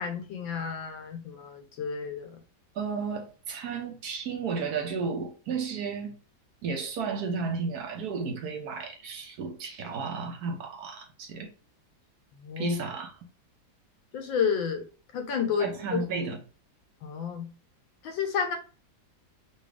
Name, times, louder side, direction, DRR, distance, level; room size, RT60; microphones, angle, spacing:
voice 1, 0.0-2.3 12.4-12.7 14.1-14.8 15.1-16.0 17.0-17.5 18.0-18.6, left 6 dB, 80° left, 1.7 m, -31 dB
voice 2, 2.7-6.2 6.6-11.5 12.6-13.2 15.6-16.4, right 5 dB, 60° right, 1.1 m, -33 dB
4.0 x 2.6 x 4.8 m
omnidirectional pair, 2.1 m